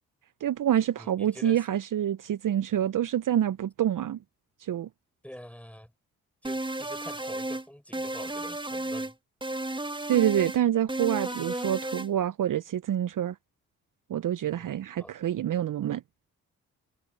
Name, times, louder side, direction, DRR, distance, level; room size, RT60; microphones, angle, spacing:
voice 1, 0.4-4.2 4.6-4.9 10.1-13.4 14.1-16.0, right 11 dB, 55° right, 0.8 m, -27 dB
voice 2, 1.0-1.6 5.2-5.9 6.4-9.2 14.4-14.7 15.0-15.1, equal, 5° left, 7.3 m, -46 dB
sound 1, 6.4-7.6 7.9-9.1 9.4-10.6 10.9-12.1, right 1 dB, 10° right, 1.5 m, -33 dB
hypercardioid pair, 40°, 39 cm